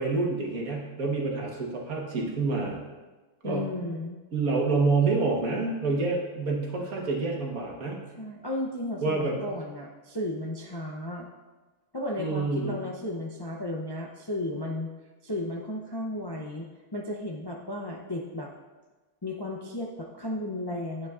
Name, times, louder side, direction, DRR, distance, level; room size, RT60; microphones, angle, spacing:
voice 1, 0.0-2.8 3.4-3.7 4.3-8.0 9.0-9.4 12.2-12.8, right 3 dB, 85° right, -1 dB, 1.9 m, -27 dB
voice 2, 3.4-4.2 8.2-11.3 11.9-14.9 15.2-18.5 19.2-21.1, left 1 dB, 30° left, -1 dB, 0.4 m, -34 dB
10.5 x 8.5 x 2.4 m, 1.2 s
omnidirectional pair, 1.5 m